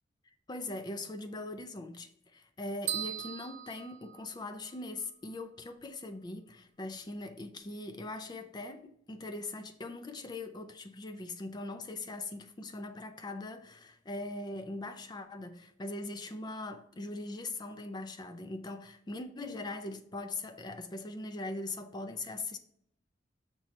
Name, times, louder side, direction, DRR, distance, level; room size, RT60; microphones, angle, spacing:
voice 1, 0.5-22.6, left 2 dB, 25° left, 0.4 m, -41 dB
sound 1, 2.9-4.8, right 10 dB, 70° right, 0.6 m, -39 dB
6.0 x 2.8 x 3.1 m
head